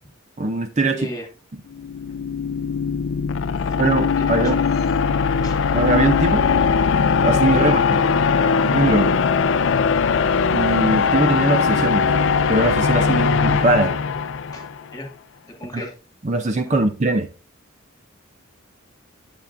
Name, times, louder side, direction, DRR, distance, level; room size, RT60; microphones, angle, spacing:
voice 1, 0.4-1.1 3.8-4.6 5.7-6.5 7.2-7.8 8.7-9.1 10.5-12.1 12.5-13.9 15.7-15.9 16.2-17.3, right 2 dB, 35° right, 0.5 m, -21 dB
sound 1, 1.7-14.8, left 5 dB, 60° left, 0.4 m, -20 dB
voice 2, 4.2-4.8 5.4-5.6 7.6-7.8 14.5-15.1 15.6-15.9, equal, 20° left, 2.0 m, -35 dB
9.6 x 6.8 x 2.5 m
head